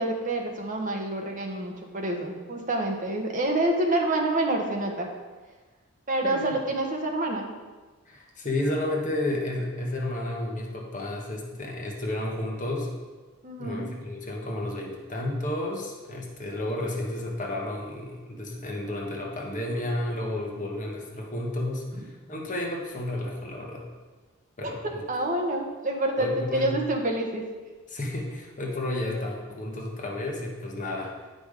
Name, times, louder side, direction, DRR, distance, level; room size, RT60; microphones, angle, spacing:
voice 1, 0.0-5.1 6.1-7.5 13.4-13.8 24.6-24.7 25.1-27.5, right 1 dB, 35° right, 1 dB, 1.1 m, -27 dB
voice 2, 8.1-12.9 13.6-23.8 24.6-25.0 26.2-26.6 27.9-31.1, left 1 dB, 35° left, -1 dB, 1.3 m, -32 dB
8.3 x 5.3 x 5.1 m, 1.3 s
head